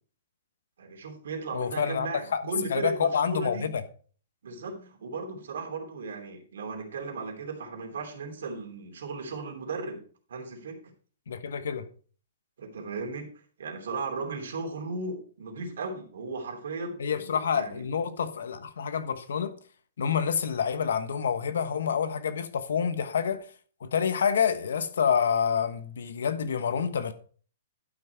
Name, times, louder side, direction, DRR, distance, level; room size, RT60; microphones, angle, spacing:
voice 1, 0.8-3.7 4.4-10.0 10.3-10.8 12.6-13.3 13.6-17.8, right 3 dB, 75° right, 3.2 m, -36 dB
voice 2, 1.5-2.4 2.7-3.8 11.3-11.9 17.0-19.5 20.0-23.4 23.8-27.1, left 7 dB, 75° left, 1.2 m, -28 dB
11.5 x 6.0 x 4.6 m
hypercardioid pair, 175°, 0 cm